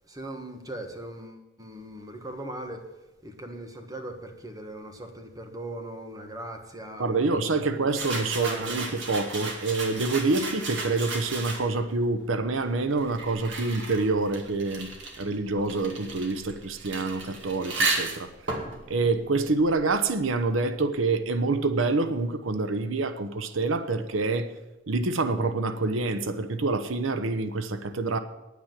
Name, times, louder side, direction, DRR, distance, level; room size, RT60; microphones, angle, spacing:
voice 1, 0.1-8.9 10.3-10.4, right 1 dB, 20° right, 4 dB, 1.5 m, -40 dB
voice 2, 7.0-14.9 15.2-18.3 18.9-24.5 24.9-28.2, right 3 dB, 85° right, 10 dB, 0.9 m, -27 dB
sound 1, 7.9-11.9 12.7-20.1, right 3 dB, 65° right, 2.2 m, -34 dB
10.0 x 9.5 x 7.5 m, 1.0 s
head